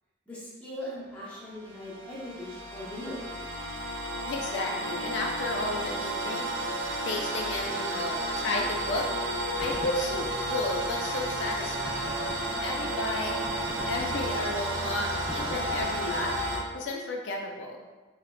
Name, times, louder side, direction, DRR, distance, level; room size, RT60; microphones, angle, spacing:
voice 1, 0.3-3.2, left 1 dB, 5° left, -8 dB, 0.7 m, -40 dB
sound 1, 1.4-16.6, right 1 dB, 80° right, 0.6 m, -32 dB
voice 2, 4.2-6.5 7.0-12.1 12.6-13.4 13.9-17.8, left 2 dB, 75° left, 1 dB, 0.3 m, -33 dB
sound 2, 9.6-11.1 11.5-11.6 11.8-16.7, equal, 45° right, 0.8 m, -43 dB
3.5 x 2.2 x 2.2 m, 1.3 s
head